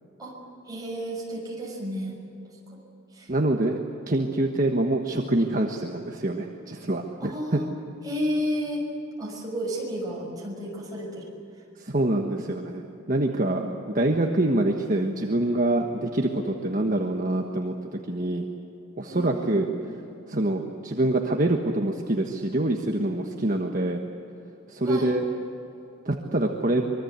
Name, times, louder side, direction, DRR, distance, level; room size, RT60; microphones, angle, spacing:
voice 1, 0.6-2.2 2.7-2.8 3.1-3.3 7.2-7.7 8.0-8.9 9.2-11.3 13.6-13.8 19.1-19.6 24.8-25.2, equal, 15° right, -2 dB, 6.3 m, -32 dB
voice 2, 3.3-3.8 4.1-7.6 11.8-12.8 13.1-18.4 19.0-19.7 20.3-24.0 24.7-25.2 26.0-26.9, right 1 dB, 40° right, 2 dB, 1.4 m, -25 dB
25.0 x 23.0 x 8.2 m, 3.0 s
head